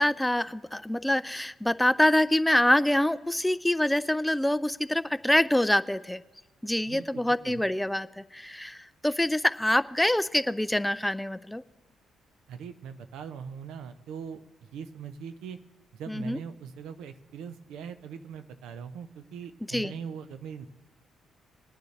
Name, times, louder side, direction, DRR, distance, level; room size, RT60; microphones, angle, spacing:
voice 1, 0.0-6.2 6.6-11.6 16.1-16.4 19.7-19.9, left 1 dB, 5° left, 15 dB, 0.3 m, -25 dB
voice 2, 6.8-7.6 12.5-14.4 14.7-15.6 15.9-20.7, right 7 dB, 85° right, 10 dB, 0.6 m, -41 dB
20.5 x 9.4 x 3.3 m, 1.1 s
cardioid pair, 90°, 0 cm